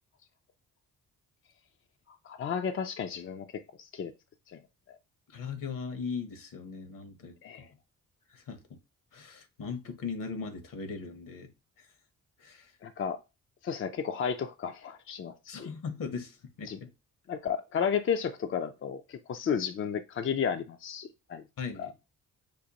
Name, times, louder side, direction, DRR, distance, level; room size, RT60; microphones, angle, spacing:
voice 1, 2.1-4.1 4.5-4.6 4.9-5.0 7.4-7.7 12.8-13.2 13.6-15.7 16.7-16.8 17.3-21.4 21.8-21.9, left 7 dB, 35° left, 0.4 m, -33 dB
voice 2, 5.3-7.7 8.3-8.8 9.1-11.5 12.4-12.7 15.5-16.9 21.6-21.9, left 5 dB, 65° left, 0.9 m, -39 dB
5.1 x 2.1 x 2.8 m
supercardioid pair, 60°, 36 cm